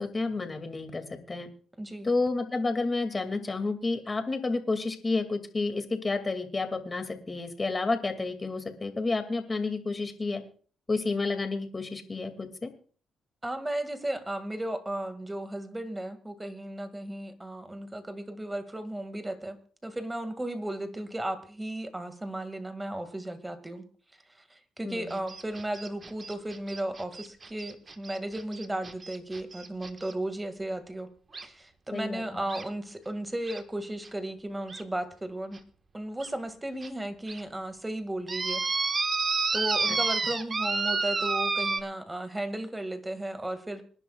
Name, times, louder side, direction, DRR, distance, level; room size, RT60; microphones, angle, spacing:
voice 1, 0.0-1.5 2.0-10.4 10.9-12.7 24.8-25.2 31.9-32.4 39.9-40.0, left 3 dB, 25° left, 6 dB, 2.3 m, -30 dB
voice 2, 1.8-2.1 13.4-23.8 24.5-31.1 31.4-35.6 35.9-38.6 39.5-43.8, right 1 dB, 15° right, 8 dB, 2.0 m, -35 dB
sound 1, 25.1-30.1 31.3-31.5 32.5-32.6 33.5-33.6 34.1-34.2 34.7-34.8 35.5-35.6 36.2-36.3 36.8-36.9 37.3-37.4 38.3-41.8, right 4 dB, 35° right, 1.4 m, -30 dB
26.5 x 10.5 x 2.4 m, 0.42 s
cardioid pair, 90°, 0 cm